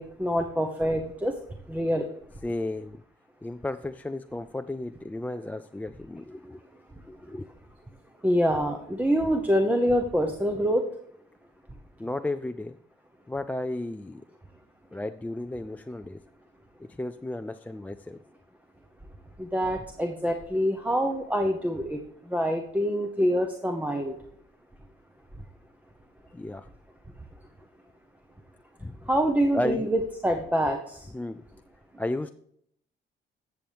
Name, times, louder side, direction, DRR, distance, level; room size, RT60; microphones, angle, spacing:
voice 1, 0.0-1.3 1.7-2.1 8.2-10.8 19.4-22.0 22.3-24.1 29.1-31.0, equal, 10° right, 4 dB, 0.8 m, -25 dB
voice 2, 2.4-3.0 3.4-6.6 7.1-7.5 12.0-12.8 13.3-14.2 14.9-16.2 16.8-18.2 26.3-26.7 28.8-29.0 29.5-29.9 31.1-31.5 32.0-32.3, left 1 dB, 10° left, 9 dB, 0.3 m, -33 dB
14.0 x 7.0 x 3.4 m, 0.70 s
cardioid pair, 90°, 20 cm